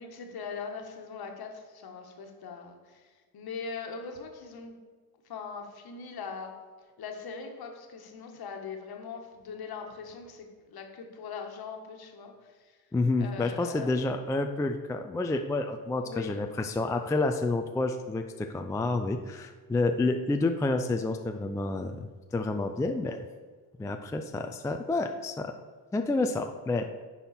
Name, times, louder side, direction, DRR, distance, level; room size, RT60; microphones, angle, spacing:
voice 1, 0.0-4.7 5.3-6.5 7.0-12.8 13.2-14.0 16.0-16.4, left 5 dB, 50° left, 3 dB, 1.4 m, -41 dB
voice 2, 12.9-23.3 23.8-25.5 25.9-26.8, left 2 dB, 5° left, 5 dB, 0.4 m, -29 dB
10.5 x 4.2 x 4.2 m, 1.5 s
supercardioid pair, 70°, 47 cm